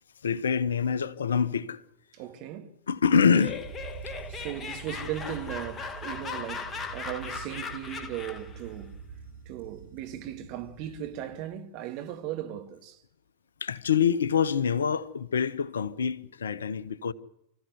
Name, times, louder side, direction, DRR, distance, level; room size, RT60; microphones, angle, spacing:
voice 1, 0.2-1.8 2.9-3.6 13.6-17.1, left 6 dB, 70° left, 0.9 m, -25 dB
voice 2, 2.1-2.7 4.3-9.0 9.5-13.0, right 11 dB, 45° right, 2.3 m, -37 dB
Laughter, 3.1-8.6, left 5 dB, 20° left, 1.6 m, -38 dB
sound 1, 3.4-11.4, right 6 dB, 75° right, 5.4 m, -45 dB
25.5 x 14.5 x 8.2 m
figure-of-eight pair, 90°, 0 cm